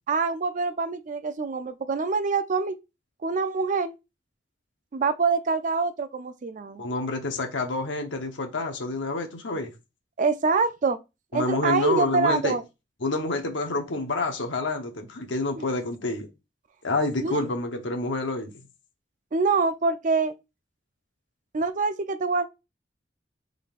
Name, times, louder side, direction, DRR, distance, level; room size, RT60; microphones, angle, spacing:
voice 1, 0.1-2.8 3.2-3.9 4.9-6.8 10.2-11.0 11.3-12.6 15.6-15.7 17.2-17.4 19.3-20.3 21.5-22.5, right 4 dB, 45° right, 0.4 m, -25 dB
voice 2, 6.8-9.7 11.3-12.5 13.0-16.3 16.8-18.6, left 2 dB, 80° left, 1.0 m, -28 dB
5.2 x 3.8 x 2.5 m
head